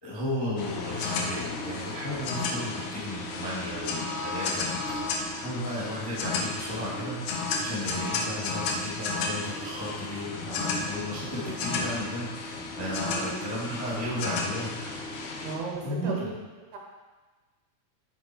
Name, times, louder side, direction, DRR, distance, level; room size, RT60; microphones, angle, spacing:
voice 1, 0.0-7.2 7.6-14.7 15.8-16.1, equal, 15° left, -7 dB, 1.0 m, -34 dB
sound 1, 0.6-15.6, left 3 dB, 90° left, 1.7 m, -33 dB
voice 2, 11.1-11.6 13.0-13.4 15.4-16.3 16.6-16.8, right 4 dB, 70° right, -1 dB, 3.0 m, -37 dB
12.0 x 4.1 x 4.6 m, 1.3 s
omnidirectional pair, 4.8 m